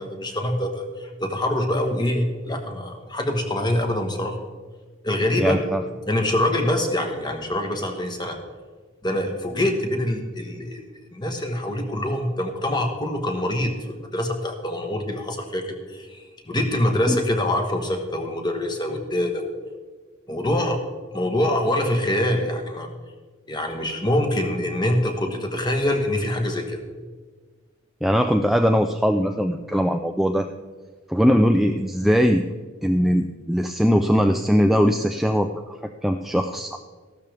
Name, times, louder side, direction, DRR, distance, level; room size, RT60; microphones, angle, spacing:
voice 1, 0.0-4.4 5.0-5.6 6.1-8.4 9.0-10.8 11.1-19.5 20.3-20.8 21.1-22.9 23.5-26.8, left 1 dB, 20° left, 4 dB, 1.3 m, -25 dB
voice 2, 5.4-5.8 17.1-17.2 28.0-30.5 31.1-32.4 32.8-35.8 36.0-36.8, equal, ahead, 5 dB, 0.4 m, -20 dB
14.5 x 12.5 x 3.5 m, 1.4 s
head